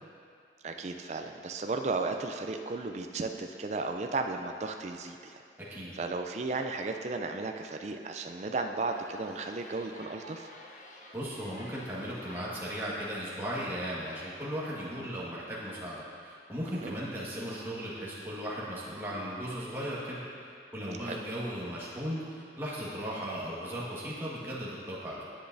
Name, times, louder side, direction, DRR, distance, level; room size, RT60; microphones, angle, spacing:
voice 1, 0.6-5.4 5.9-10.5 16.7-16.9 21.0-21.2, right 3 dB, 40° right, 4 dB, 0.4 m, -34 dB
Children entering school, 8.8-14.4, left 1 dB, 45° left, 0.8 m, -51 dB
voice 2, 11.1-25.2, equal, 15° right, -7 dB, 1.6 m, -37 dB
10.0 x 10.0 x 2.6 m, 2.3 s
head